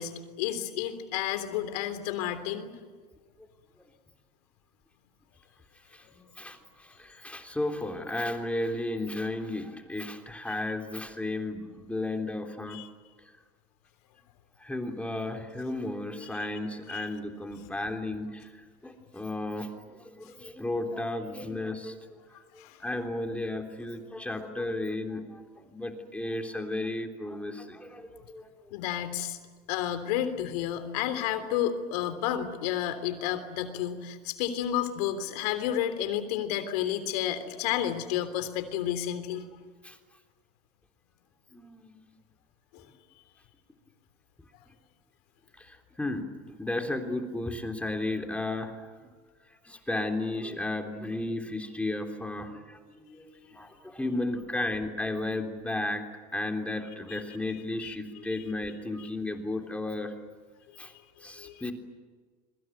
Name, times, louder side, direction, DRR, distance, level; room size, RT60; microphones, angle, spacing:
voice 1, 0.0-2.7 12.7-12.9 16.9-17.1 22.6-22.8 28.7-29.4 29.7-39.5 42.7-42.8 57.1-57.2 57.8-57.9 61.4-61.7, left 11 dB, 75° left, 10 dB, 3.4 m, -31 dB
voice 2, 5.9-12.8 14.6-22.0 22.5-28.7 39.8-40.0 41.5-42.0 45.6-48.8 49.6-56.0 56.3-60.1 60.8-60.9 61.2-61.7, left 2 dB, 5° left, 4 dB, 3.4 m, -34 dB
27.0 x 23.0 x 9.3 m, 1.5 s
supercardioid pair, 100°, 20 cm